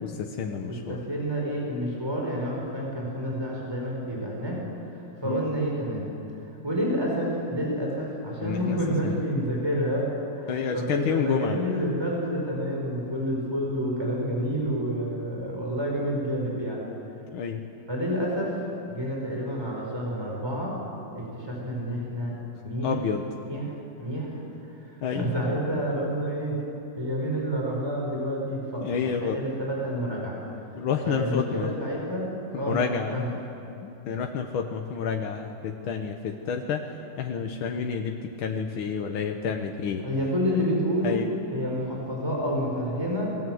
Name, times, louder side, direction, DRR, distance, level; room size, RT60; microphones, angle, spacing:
voice 1, 0.0-1.0 5.2-5.5 8.4-8.8 9.0-9.2 10.5-11.6 17.3-17.6 22.8-23.3 25.0-25.2 28.8-29.4 30.8-31.8 32.5-33.2 33.8-36.8 37.2-40.0 41.0-41.3, left 6 dB, 90° left, 3 dB, 2.0 m, -29 dB
voice 2, 0.6-4.6 4.9-6.0 6.6-10.1 10.3-16.8 17.9-18.5 18.9-20.7 21.1-22.4 22.6-22.9 23.4-23.6 24.0-24.4 24.9-26.6 27.0-30.4 31.0-32.3 32.6-32.8 33.1-33.3 40.0-41.2 41.5-43.3, equal, 10° right, -2 dB, 5.1 m, -29 dB
27.0 x 20.0 x 7.9 m, 2.8 s
omnidirectional pair, 2.2 m